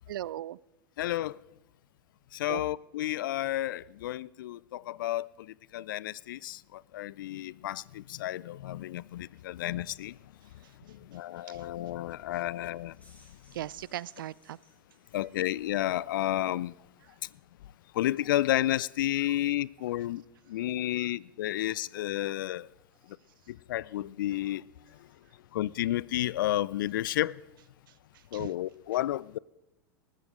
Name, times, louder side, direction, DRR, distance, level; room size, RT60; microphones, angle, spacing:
voice 1, 0.1-0.6 2.5-2.6 11.5-11.6 13.5-14.6 20.7-20.8 28.3-28.5, right 13 dB, 70° right, 0.4 m, -38 dB
voice 2, 1.0-1.4 2.3-5.3 5.7-10.1 11.1-12.9 15.1-16.7 17.9-20.2 20.5-22.7 23.5-24.6 25.5-27.4 28.3-29.4, left 14 dB, 65° left, 0.4 m, -31 dB
sound 1, 12.8-15.8, left 1 dB, 10° left, 6.2 m, -63 dB
20.0 x 14.0 x 3.7 m
figure-of-eight pair, 90°, 12 cm